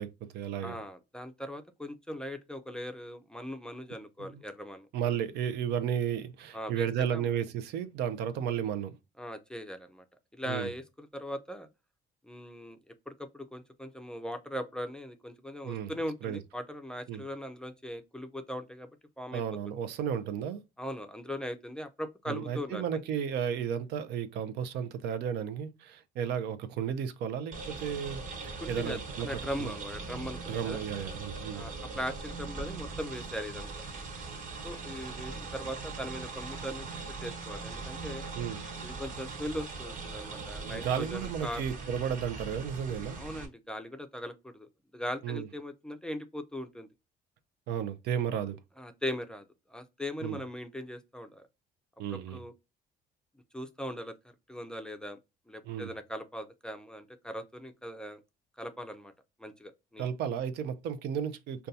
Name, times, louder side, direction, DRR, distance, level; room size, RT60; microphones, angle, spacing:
voice 1, 0.0-0.8 4.2-4.3 4.9-9.0 10.5-10.7 15.6-15.9 16.2-16.4 17.1-17.2 19.3-20.6 22.3-29.3 29.6-29.7 30.5-31.7 38.4-38.6 40.6-43.2 45.2-45.5 47.7-48.6 50.2-50.4 52.0-52.4 55.6-55.9 60.0-61.7, right 8 dB, 75° right, 0.5 m, -33 dB
voice 2, 0.6-4.9 6.5-7.3 9.2-10.0 10.3-11.7 12.2-18.9 19.2-19.4 20.8-23.0 28.6-30.8 31.5-33.7 34.6-36.9 37.2-38.2 38.8-41.6 43.2-46.9 48.8-51.4 52.1-52.5 53.5-54.1 54.5-55.2 55.5-58.2 58.6-59.1 59.4-60.0, equal, 5° left, 0.4 m, -39 dB
sound 1, 27.5-43.5, right 4 dB, 50° right, 1.1 m, -41 dB
5.2 x 2.3 x 2.6 m
cardioid pair, 110°, 17 cm